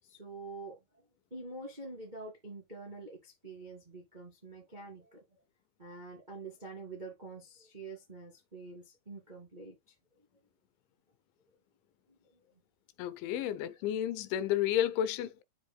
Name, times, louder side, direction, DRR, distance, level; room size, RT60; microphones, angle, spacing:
voice 1, 0.0-0.8 1.3-5.2 5.8-9.8 12.1-12.4, right 3 dB, 35° right, 0.6 m, -46 dB
voice 2, 13.0-15.4, left 11 dB, 80° left, 3.0 m, -31 dB
12.0 x 4.6 x 2.2 m
omnidirectional pair, 5.4 m